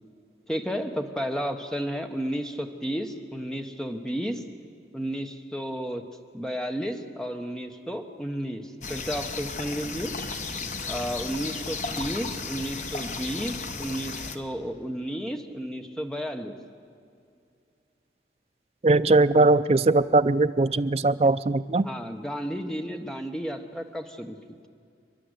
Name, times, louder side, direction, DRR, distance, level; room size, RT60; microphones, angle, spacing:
voice 1, 0.5-4.4 4.9-6.0 6.3-10.1 10.9-16.6 21.8-24.4, equal, 5° left, 5 dB, 1.0 m, -32 dB
sound 1, 8.8-14.4, left 4 dB, 40° left, 1.0 m, -34 dB
voice 2, 18.8-21.9, right 2 dB, 35° right, 11 dB, 0.4 m, -20 dB
29.0 x 11.0 x 8.1 m, 2.5 s
head